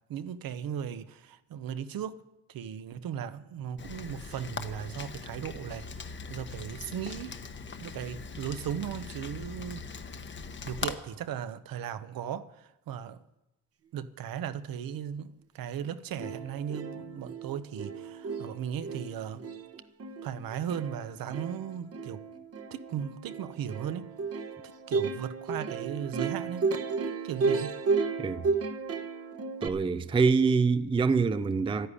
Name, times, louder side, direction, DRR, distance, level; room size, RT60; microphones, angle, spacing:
voice 1, 0.1-2.2 2.5-7.4 7.8-9.8 10.6-13.2 13.9-19.4 20.2-22.2 22.7-24.1 24.6-26.7 27.2-27.8, right 9 dB, 60° right, 1.0 m, -37 dB
Rain, 3.8-10.9, left 5 dB, 30° left, 1.1 m, -40 dB
Plucked string instrument, 15.8-15.9 16.2-29.7, right 4 dB, 35° right, 1.1 m, -33 dB
voice 2, 29.6-31.9, right 4 dB, 15° right, 0.5 m, -25 dB
13.0 x 10.5 x 9.8 m
cardioid pair, 145°, 39 cm